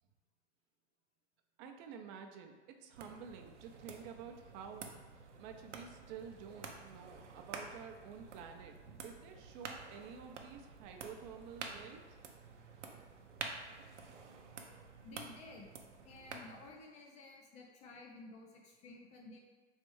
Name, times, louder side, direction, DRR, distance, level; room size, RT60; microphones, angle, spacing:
voice 1, 1.6-12.0, right 6 dB, 40° right, 5 dB, 0.5 m, -50 dB
sound 1, 2.9-16.7, right 5 dB, 85° right, 0.6 m, -50 dB
sound 2, 5.4-11.9, right 2 dB, 5° right, 0.7 m, -66 dB
voice 2, 15.0-15.7 16.0-19.4, left 3 dB, 20° left, 0 dB, 0.3 m, -53 dB
3.3 x 3.2 x 3.1 m, 1.3 s
hypercardioid pair, 105°, 35 cm